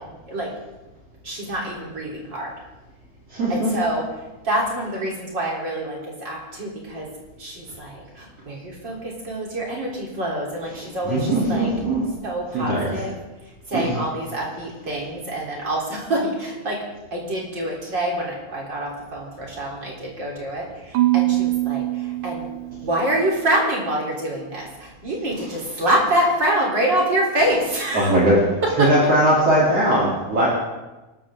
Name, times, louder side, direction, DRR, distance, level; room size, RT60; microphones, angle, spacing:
voice 1, 1.2-2.5 3.5-4.1 4.4-7.1 7.4-11.7 12.2-13.2 13.7-16.8 17.1-22.4 22.8-28.1 28.6-28.9, right 1 dB, 35° right, -3 dB, 4.2 m, -26 dB
voice 2, 3.3-3.7 10.8-12.0 12.5-12.9 13.7-14.0 27.9-28.4 28.8-30.5, right 1 dB, 55° right, -6 dB, 4.3 m, -19 dB
Marimba xylophone / Wood, 20.9-23.1, right 17 dB, 85° right, 2.2 m, -23 dB
25.0 x 13.0 x 3.8 m, 1.1 s
omnidirectional pair, 3.4 m